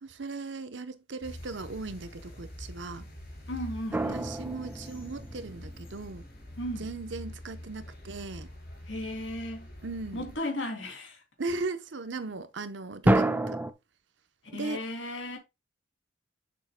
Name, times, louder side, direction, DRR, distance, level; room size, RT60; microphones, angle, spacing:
voice 1, 0.0-3.0 4.1-6.2 6.8-8.5 9.8-10.3 11.4-13.6 14.5-14.8, right 3 dB, 65° right, 0.8 m, -37 dB
sound 1, 1.2-10.4, left 1 dB, 50° left, 3.4 m, -45 dB
voice 2, 3.5-4.2 6.6-6.9 8.9-9.7 10.1-11.2 14.4-15.4, left 1 dB, 75° left, 2.8 m, -35 dB
sound 2, 3.9-6.0 13.1-13.7, right 1 dB, 10° right, 0.5 m, -28 dB
8.2 x 7.0 x 2.2 m
head